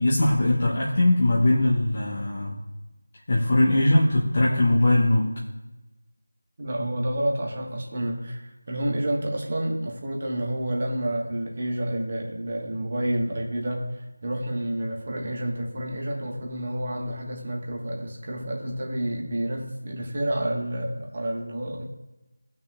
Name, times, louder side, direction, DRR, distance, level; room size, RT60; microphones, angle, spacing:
voice 1, 0.0-2.6 3.3-5.3, left 1 dB, 35° left, -5 dB, 1.3 m, -21 dB
voice 2, 6.6-21.9, right 1 dB, 35° right, -1 dB, 1.5 m, -29 dB
17.0 x 6.0 x 2.5 m, 1.0 s
figure-of-eight pair, 170°, 0 cm